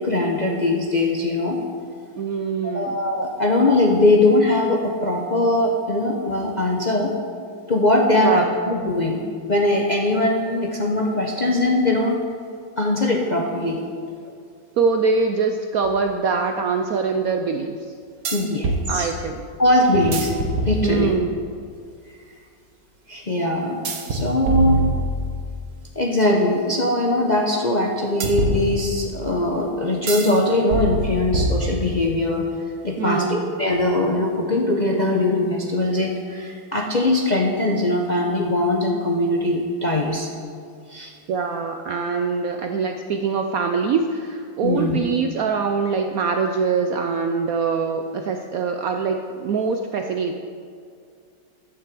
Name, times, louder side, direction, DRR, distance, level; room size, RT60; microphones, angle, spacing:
voice 1, 0.0-1.6 2.7-7.1 7.7-9.2 9.5-12.2 12.8-13.8 18.3-19.1 19.6-20.3 20.6-21.1 23.1-23.8 24.1-24.8 25.9-32.4 32.8-40.3 40.9-41.1 44.6-45.0, left 2 dB, 40° left, -1 dB, 0.6 m, -21 dB
voice 2, 2.2-2.9 8.1-8.5 14.8-17.8 18.9-19.5 20.8-21.4 33.0-33.5 41.3-50.4, right 5 dB, 70° right, 5 dB, 0.8 m, -23 dB
sound 1, 15.8-15.9 18.2-18.9 19.9-21.2 23.8-25.5 28.2-29.2 30.1-30.4 30.7-32.1, right 2 dB, 55° right, 1.4 m, -24 dB
10.5 x 6.3 x 7.5 m, 2.2 s
omnidirectional pair, 2.0 m